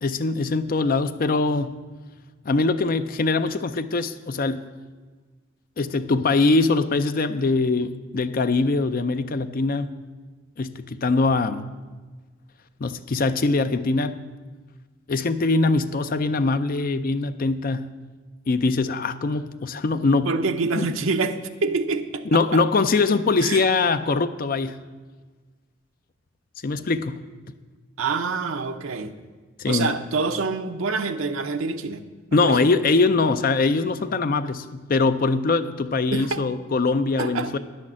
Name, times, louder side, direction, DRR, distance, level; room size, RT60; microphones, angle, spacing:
voice 1, 0.0-1.8 2.5-4.6 5.8-9.9 10.6-11.7 12.8-14.2 15.1-17.9 18.5-20.3 20.7-20.9 22.3-24.8 26.6-27.2 29.6-29.9 32.3-37.6, left 3 dB, 40° left, 11 dB, 0.4 m, -22 dB
voice 2, 20.2-22.6 23.4-23.6 28.0-29.1 29.7-32.7 36.1-36.4 37.2-37.5, right 4 dB, 70° right, 7 dB, 0.7 m, -26 dB
10.0 x 6.4 x 7.4 m, 1.4 s
head